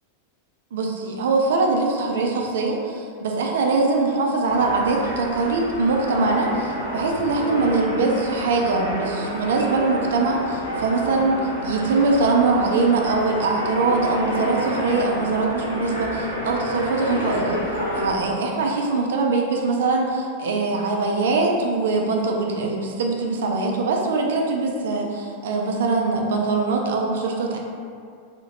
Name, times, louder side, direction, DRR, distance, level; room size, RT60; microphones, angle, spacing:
voice 1, 0.7-17.6 18.0-27.6, right 3 dB, 60° right, 1 dB, 0.3 m, -22 dB
sound 1, 4.5-18.1, equal, 90° left, 0.6 m, -29 dB
2.8 x 2.0 x 2.8 m, 2.3 s
figure-of-eight pair, 90°, 0 cm